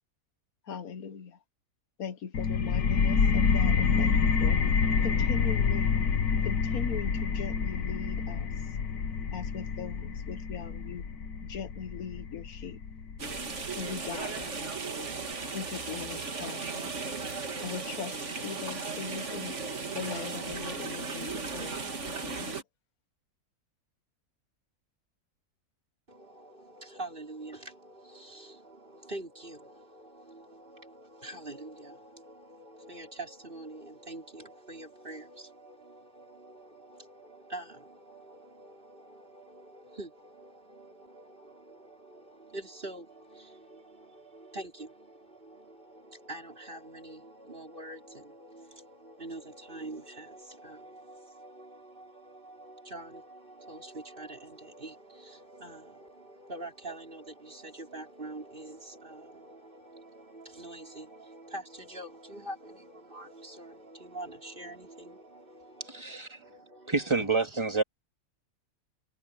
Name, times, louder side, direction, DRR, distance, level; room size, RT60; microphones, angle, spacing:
voice 1, 0.7-1.4 2.0-4.6 5.0-5.9 6.4-8.5 9.3-11.1 11.5-12.8 13.8-14.5 15.5-16.9 17.6-19.6 19.9-22.6, left 6 dB, 70° left, 1.6 m, -40 dB
sound 1, 2.3-13.8, left 6 dB, 90° left, 1.8 m, -28 dB
sound 2, 13.2-22.6, right 4 dB, 50° right, 2.2 m, -36 dB
voice 2, 26.1-67.3, right 2 dB, 35° right, 5.1 m, -45 dB
voice 3, 65.9-66.4 66.9-67.8, right 3 dB, 20° right, 2.3 m, -28 dB
omnidirectional pair, 1.6 m